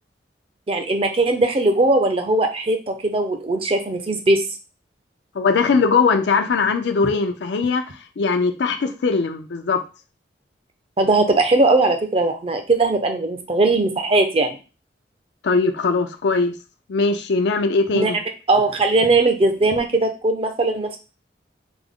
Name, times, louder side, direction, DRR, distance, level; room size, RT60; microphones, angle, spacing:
voice 1, 0.7-4.4 7.0-7.1 11.0-14.6 17.9-18.1 18.5-21.0, right 2 dB, 30° right, 5 dB, 0.5 m, -19 dB
voice 2, 5.3-7.8 8.2-9.8 15.4-16.5 16.9-18.2, left 4 dB, 75° left, 7 dB, 0.4 m, -20 dB
3.5 x 2.0 x 3.5 m, 0.31 s
head